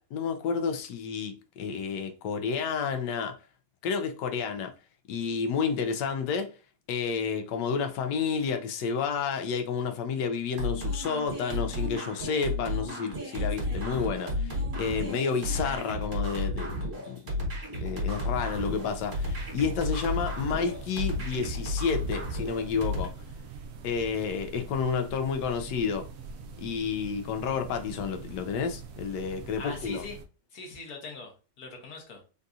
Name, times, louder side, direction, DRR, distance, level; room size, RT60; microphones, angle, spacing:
voice 1, 0.1-3.3 3.8-4.7 5.1-6.5 6.9-17.2 17.8-23.1 23.8-26.1 26.6-30.0, left 6 dB, 90° left, 1.3 m, -30 dB
sound 1, 10.6-23.1, left 1 dB, 50° right, 1.5 m, -32 dB
sound 2, 18.5-30.2, right 4 dB, 70° right, 0.8 m, -44 dB
voice 2, 29.6-30.2 30.5-32.2, left 3 dB, 65° left, 1.5 m, -41 dB
3.8 x 2.6 x 2.3 m
omnidirectional pair, 1.8 m